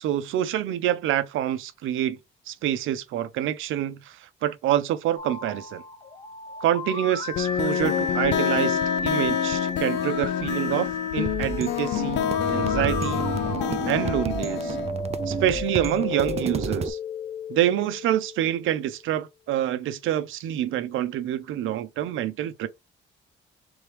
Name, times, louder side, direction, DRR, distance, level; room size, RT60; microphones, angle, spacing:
voice 1, 0.0-2.2 2.5-4.2 4.4-5.8 6.6-13.3 13.7-14.8 15.3-17.0 17.5-22.7, right 12 dB, 85° right, 0.6 m, -27 dB
sound 1, 5.2-19.0, left 3 dB, 25° left, 0.8 m, -34 dB
sound 2, 7.3-14.9, left 10 dB, 60° left, 0.4 m, -27 dB
sound 3, 11.3-16.9, right 6 dB, 30° right, 0.4 m, -32 dB
3.5 x 3.2 x 3.3 m
cardioid pair, 90°, 20 cm